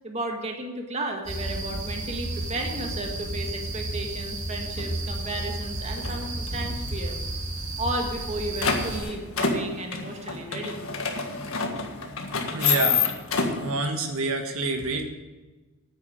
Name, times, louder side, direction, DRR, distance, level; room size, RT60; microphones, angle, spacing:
voice 1, 0.0-7.2 7.8-10.8, right 1 dB, 30° right, 2 dB, 1.7 m, -33 dB
sound 1, 1.3-9.0, right 2 dB, 60° right, 2.8 m, -32 dB
sound 2, 4.8-4.9 5.4-5.7 6.0-6.9 7.2-7.3 7.5-7.6 8.0-13.7, left 5 dB, 75° left, 1.7 m, -28 dB
voice 2, 12.5-13.0 13.5-15.1, right 3 dB, 80° right, 4 dB, 1.5 m, -27 dB
9.8 x 9.5 x 7.7 m, 1.2 s
head